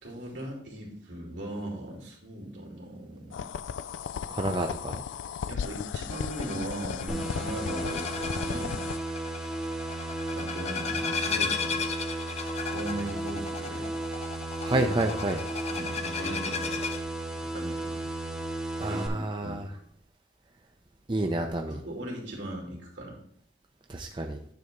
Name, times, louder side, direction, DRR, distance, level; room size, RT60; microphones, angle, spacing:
voice 1, 0.0-3.4 5.5-8.8 10.3-11.8 12.7-13.9 14.6-15.0 15.7-16.8 17.5-18.0 18.9-19.6 21.7-23.2, right 1 dB, 75° right, -1 dB, 2.6 m, -38 dB
sound 1, 3.3-9.0, left 7 dB, 85° left, 0.3 m, -36 dB
voice 2, 4.3-5.0 14.6-15.4 18.8-19.7 21.1-21.8 23.9-24.4, right 2 dB, 25° right, 3 dB, 0.5 m, -29 dB
sound 2, 6.1-17.0, left 5 dB, 35° left, 0.6 m, -36 dB
sound 3, 7.1-19.1, right 2 dB, 5° right, 0.9 m, -34 dB
9.4 x 3.5 x 5.3 m, 0.69 s
head